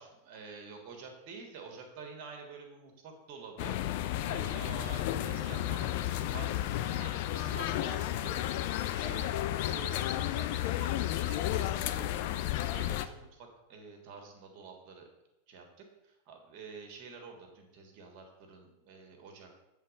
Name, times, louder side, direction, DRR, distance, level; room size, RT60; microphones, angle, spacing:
voice 1, 0.0-3.8 4.2-9.3 9.6-15.1 15.5-19.5, right 4 dB, 40° right, 3 dB, 1.5 m, -49 dB
sound 1, 3.6-13.1, left 13 dB, 50° left, 0.4 m, -32 dB
8.3 x 3.6 x 5.0 m, 0.95 s
figure-of-eight pair, 90°, 0 cm